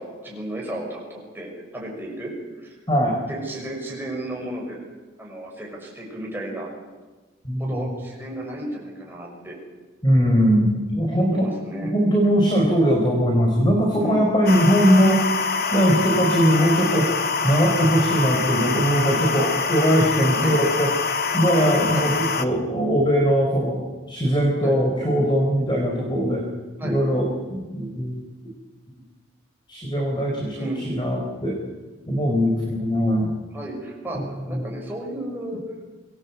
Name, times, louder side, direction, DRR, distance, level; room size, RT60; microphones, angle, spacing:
voice 1, 0.0-2.7 3.3-4.8 5.2-6.7 7.6-9.6 11.1-11.9 13.9-14.2 20.4-20.6 21.9-22.1 24.6-24.8 26.8-27.0 30.5-30.8 33.5-35.6, right 1 dB, 10° right, -2 dB, 6.4 m, -33 dB
voice 2, 7.4-7.9 10.0-11.5 11.8-15.2 15.7-17.1 17.4-20.9 21.3-23.8 24.1-26.4 26.8-28.1 29.7-31.6 32.1-33.3 34.5-34.7, equal, 25° left, 0 dB, 4.4 m, -20 dB
sound 1, 14.5-22.5, left 4 dB, 50° left, 1.4 m, -25 dB
25.0 x 19.0 x 8.3 m, 1.3 s
head